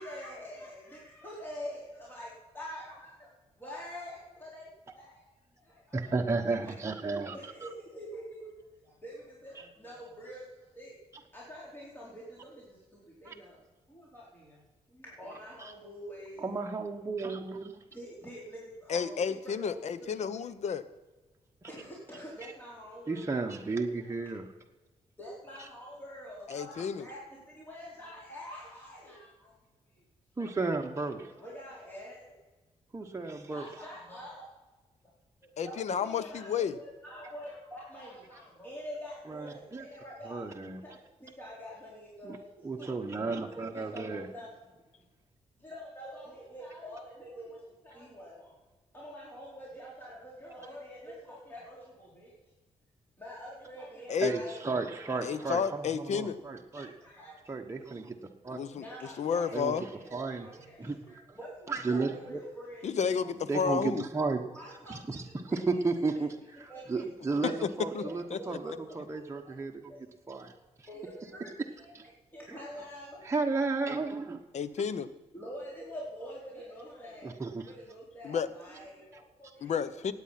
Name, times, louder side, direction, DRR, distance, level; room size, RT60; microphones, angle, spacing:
voice 1, 0.0-3.3 3.6-4.7 4.9-5.2 5.6-6.2 6.5-6.6 7.3-8.6 8.8-10.9 11.3-13.6 13.9-14.6 14.9-16.5 17.9-20.5 21.7-24.3 25.2-29.5 30.9-32.4 33.4-34.5 35.0-35.1 35.4-40.5 40.8-42.9 43.3-44.5 45.0-45.1 45.6-48.6 48.9-52.4 53.2-54.6 55.1-56.0 56.7-57.4 57.7-57.8 58.7-63.3 64.5-65.8 66.7-67.0 67.4-67.6 67.9-69.6 69.9-70.0 70.4-70.5 70.8-71.9 72.3-73.2 75.3-77.4 77.6-79.8, equal, 15° left, -6 dB, 4.4 m, -46 dB
voice 2, 5.9-7.4 7.6-7.7 13.2-13.3 15.6-15.7 16.4-17.7 21.6-21.7 23.1-24.4 30.4-31.3 32.9-33.7 39.3-39.9 40.2-40.8 42.2-42.4 42.6-44.3 54.2-56.9 57.5-58.2 58.4-58.6 59.5-60.5 60.8-61.4 61.7-62.4 63.5-64.4 64.9-67.5 67.8-69.9 70.3-70.5 71.9-72.1 72.5-72.6 73.2-74.4 77.2-77.7, right 3 dB, 25° right, 1 dB, 1.2 m, -33 dB
voice 3, 18.9-20.8 26.5-27.1 35.6-36.7 54.1-54.3 55.2-56.4 58.5-58.8 59.2-59.8 62.8-64.0 67.6-67.7 67.9-68.0 68.3-68.4 74.5-75.1 78.2-78.5 79.6-80.1, left 6 dB, 70° left, 14 dB, 0.9 m, -31 dB
16.5 x 9.0 x 5.9 m, 1.2 s
cardioid pair, 85°, 12 cm